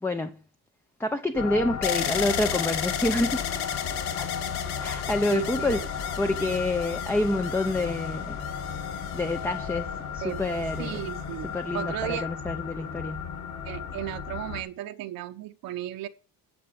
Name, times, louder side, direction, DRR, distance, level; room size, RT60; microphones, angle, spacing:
voice 1, 0.0-0.4 1.0-3.4 4.2-4.3 4.8-5.8 6.1-8.4 9.1-11.0 11.5-13.3, left 2 dB, 5° left, 0.5 m, -28 dB
sound 1, 1.3-14.6, left 7 dB, 45° left, 2.2 m, -34 dB
sound 2, 1.8-9.8 10.5-11.2, left 10 dB, 85° left, 1.3 m, -34 dB
voice 2, 5.3-5.9 10.2-10.4 10.8-11.5 11.7-12.3 13.6-16.1, right 13 dB, 65° right, 0.9 m, -34 dB
9.9 x 7.0 x 5.3 m
cardioid pair, 155°, 37 cm